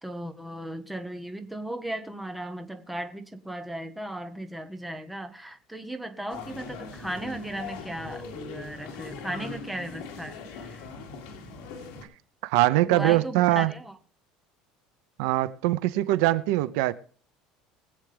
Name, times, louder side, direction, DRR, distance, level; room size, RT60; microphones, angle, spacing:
voice 1, 0.0-10.9 12.8-14.0, right 1 dB, 5° right, 0.9 m, -36 dB
sound 1, 6.3-12.0, left 4 dB, 65° left, 2.9 m, -40 dB
voice 2, 12.4-13.7 15.2-16.9, right 17 dB, 75° right, 0.7 m, -22 dB
22.0 x 8.2 x 3.4 m
cardioid pair, 175°, 2 cm